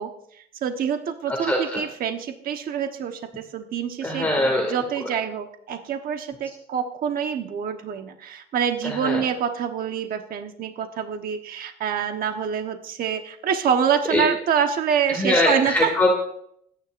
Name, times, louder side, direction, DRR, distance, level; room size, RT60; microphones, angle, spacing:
voice 1, 0.0-4.3 4.7-15.9, right 7 dB, 60° right, 6 dB, 1.2 m, -26 dB
voice 2, 1.3-1.8 4.0-5.1 8.8-9.2 14.1-14.3 15.1-16.2, left 1 dB, 10° left, 0 dB, 2.3 m, -23 dB
26.5 x 10.0 x 2.6 m, 0.70 s
cardioid pair, 110°, 17 cm